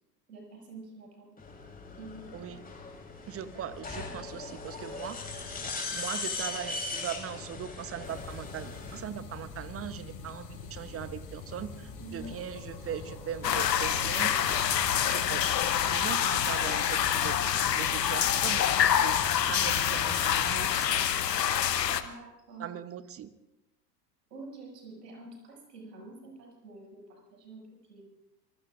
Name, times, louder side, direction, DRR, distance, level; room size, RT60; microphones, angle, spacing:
voice 1, 0.3-1.4 2.0-2.6 12.0-12.3 21.8-22.7 24.3-28.0, right 2 dB, 75° right, 0 dB, 6.6 m, -47 dB
sound 1, 1.4-9.0, left 3 dB, 20° left, 3.6 m, -39 dB
voice 2, 3.3-5.3 5.9-14.7 14.9-15.5 15.8-17.4 17.7-19.2 19.5-21.1 22.6-23.3, right 9 dB, 30° right, 13 dB, 1.0 m, -40 dB
sound 2, 8.0-20.6, left 5 dB, 40° left, 5.1 m, -43 dB
sound 3, 13.4-22.0, left 9 dB, 80° left, 1.0 m, -26 dB
26.5 x 19.5 x 2.5 m, 0.95 s
figure-of-eight pair, 75°, 49 cm